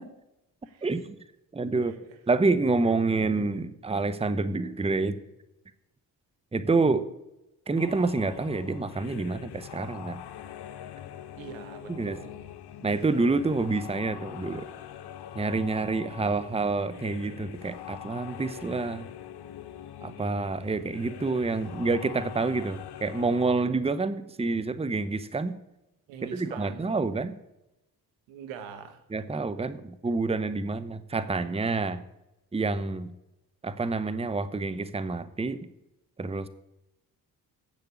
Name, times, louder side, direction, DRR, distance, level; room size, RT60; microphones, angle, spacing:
voice 1, 0.8-1.2 1.5-1.9 2.3-5.2 6.5-7.0 7.7-10.2 12.0-12.2 12.8-14.7 15.3-19.1 20.0-25.5 26.3-27.3 29.1-32.0 32.5-33.1 33.6-35.6 36.2-36.5, right 3 dB, 15° right, 13 dB, 0.8 m, -28 dB
voice 2, 1.8-2.2 11.4-12.5 26.1-27.0 28.3-29.0, right 8 dB, 85° right, 8 dB, 1.3 m, -44 dB
sound 1, 7.8-23.5, left 11 dB, 60° left, 1.0 m, -43 dB
8.4 x 6.7 x 8.5 m, 0.90 s
supercardioid pair, 50°, 45 cm